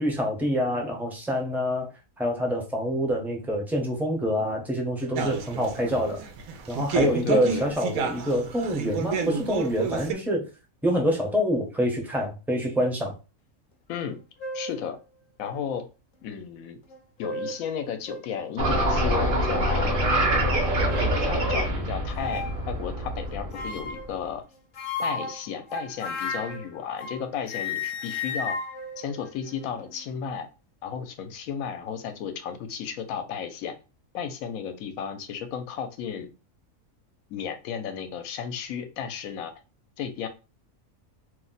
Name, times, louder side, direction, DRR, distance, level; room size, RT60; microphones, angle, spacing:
voice 1, 0.0-1.9 2.2-6.3 6.7-10.5 10.8-13.1, equal, ahead, -1 dB, 0.5 m, -26 dB
sound 1, 5.2-10.1, right 6 dB, 80° right, 1.0 m, -30 dB
voice 2, 6.9-7.7 13.9-14.2 14.5-15.0 15.4-15.8 16.2-16.8 17.2-19.9 21.0-24.4 25.0-28.6 29.0-30.5 30.8-33.8 34.1-36.3 37.3-39.5 40.0-40.3, left 7 dB, 80° left, 8 dB, 1.0 m, -33 dB
sound 2, 14.0-14.1 14.4-14.8 15.5-15.6 16.9-17.6 18.1-18.2 18.7-18.9 19.4-19.7 20.4-21.1 22.1-22.6 23.5-24.1 24.7-27.2 27.5-29.8, left 3 dB, 50° left, 0.7 m, -34 dB
sound 3, 18.6-23.9, right 1 dB, 45° right, 0.8 m, -25 dB
2.7 x 2.1 x 3.8 m, 0.30 s
omnidirectional pair, 1.4 m